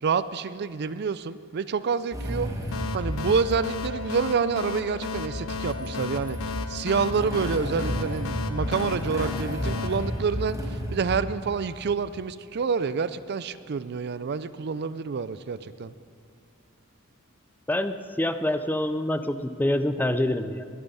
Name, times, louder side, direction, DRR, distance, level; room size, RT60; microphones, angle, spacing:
voice 1, 0.0-2.5 2.9-6.4 6.7-15.9, right 5 dB, 50° right, 15 dB, 0.4 m, -28 dB
Motorcycle / Engine starting, 2.1-11.2, equal, 15° right, 1.8 m, -32 dB
sound 1, 2.7-11.0, left 6 dB, 75° left, 0.7 m, -35 dB
voice 2, 17.7-20.6, left 1 dB, 10° left, 10 dB, 0.5 m, -26 dB
21.0 x 10.5 x 5.5 m, 2.3 s
head